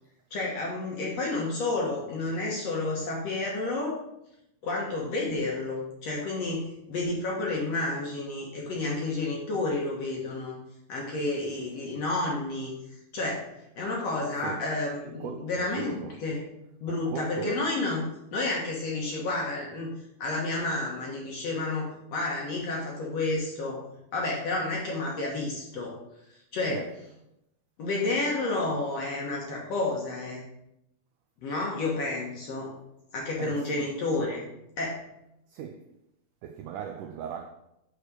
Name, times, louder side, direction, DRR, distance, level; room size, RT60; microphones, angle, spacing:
voice 1, 0.3-4.0 4.6-10.6 10.9-12.7 13.1-13.5 13.7-16.0 16.2-16.4 16.8-18.0 18.3-23.8 24.1-26.0 26.5-26.8 27.8-30.4 31.4-32.7 33.1-34.4 34.8-35.0, left 2 dB, 60° left, 1.9 m, -30 dB
voice 2, 15.2-16.2 16.9-17.7 26.7-26.9 33.4-33.9 35.5-35.9 36.4-37.5, right 8 dB, 85° right, 1.8 m, -38 dB
6.6 x 6.5 x 4.8 m
omnidirectional pair, 4.3 m